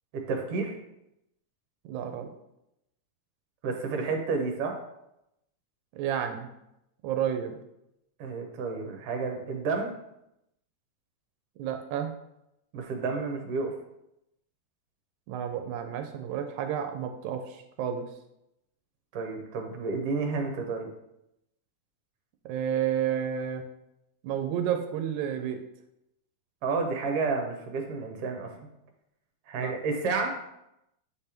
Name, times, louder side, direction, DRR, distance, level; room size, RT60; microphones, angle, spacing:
voice 1, 0.1-0.8 3.6-4.8 8.2-9.9 12.7-13.7 19.1-20.9 26.6-28.5 29.5-30.3, right 4 dB, 60° right, 3 dB, 1.8 m, -30 dB
voice 2, 1.9-2.3 6.0-6.5 7.0-7.6 11.6-12.1 15.3-18.1 22.5-23.6 24.2-25.6 29.6-29.7, right 9 dB, 85° right, 6 dB, 2.0 m, -31 dB
8.4 x 3.4 x 4.3 m, 0.85 s
omnidirectional pair, 3.4 m